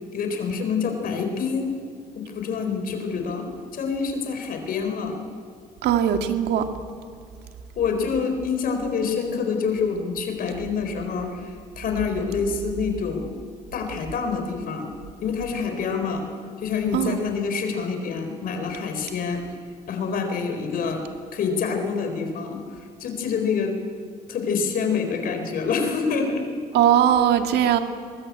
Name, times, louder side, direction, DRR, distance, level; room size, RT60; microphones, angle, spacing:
voice 1, 0.1-1.8 2.1-5.2 7.8-13.4 13.7-14.9 15.2-16.3 16.6-19.4 19.9-21.0 21.3-22.6 23.0-23.8 24.3-26.4, left 5 dB, 60° left, 5 dB, 4.4 m, -26 dB
voice 2, 5.8-6.7 16.9-17.2 26.7-27.8, right 10 dB, 75° right, 6 dB, 2.0 m, -19 dB
22.0 x 21.5 x 8.6 m, 2.1 s
cardioid pair, 110°, 17 cm